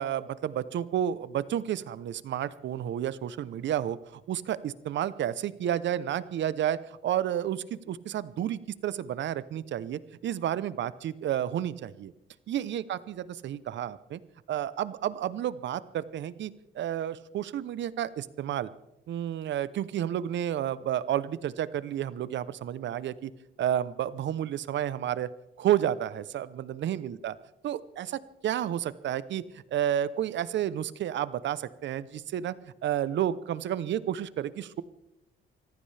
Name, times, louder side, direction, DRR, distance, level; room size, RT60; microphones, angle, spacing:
voice 1, 0.0-12.1 12.5-14.2 14.5-18.7 19.1-23.3 23.6-25.3 25.6-27.3 27.6-29.4 29.7-32.5 32.8-34.8, right 11 dB, 65° right, 17 dB, 0.8 m, -31 dB
24.5 x 15.0 x 3.4 m, 0.89 s
cardioid pair, 90°, 20 cm